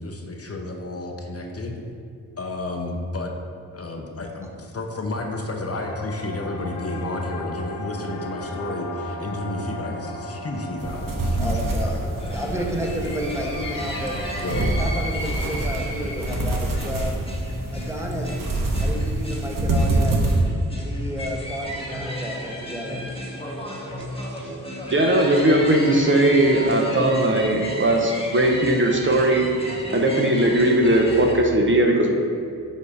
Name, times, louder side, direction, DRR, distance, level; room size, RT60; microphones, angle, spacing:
voice 1, 0.0-1.8 2.4-3.3 3.7-12.2 14.4-14.8, left 2 dB, 40° left, 2 dB, 0.7 m, -31 dB
sound 1, 5.7-15.1, equal, 85° left, 0.6 m, -37 dB
sound 2, 10.8-20.4, right 2 dB, 65° right, 1.0 m, -26 dB
voice 2, 11.4-14.2 14.8-17.2 17.7-18.3 18.8-20.2 20.7-23.0, equal, 10° right, 0 dB, 1.0 m, -31 dB
sound 3, 12.2-31.3, equal, 15° left, 1.1 m, -34 dB
voice 3, 24.3-29.5 29.9-32.1, right 1 dB, 35° right, 1 dB, 0.7 m, -19 dB
7.4 x 2.8 x 4.9 m, 2.4 s
cardioid pair, 65°, 36 cm